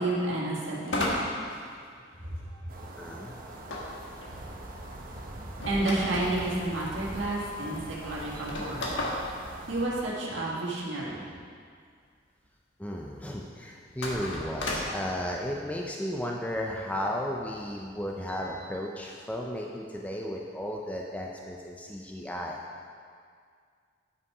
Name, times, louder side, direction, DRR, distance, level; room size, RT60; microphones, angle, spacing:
voice 1, 0.0-1.6 2.2-2.6 5.6-8.9 9.7-11.3, right 2 dB, 75° right, -5 dB, 1.8 m, -31 dB
sound 1, 0.9-2.4 3.7-6.5 7.3-7.4 7.6-7.7 8.3-10.5 13.9-15.0, left 1 dB, 80° left, 1.4 m, -34 dB
sound 2, 2.7-9.9, right 1 dB, 50° right, 0.9 m, -42 dB
voice 2, 3.0-3.3 8.3-8.4 12.8-22.6, equal, 10° left, -1 dB, 0.5 m, -34 dB
9.6 x 5.6 x 4.7 m, 2.1 s
head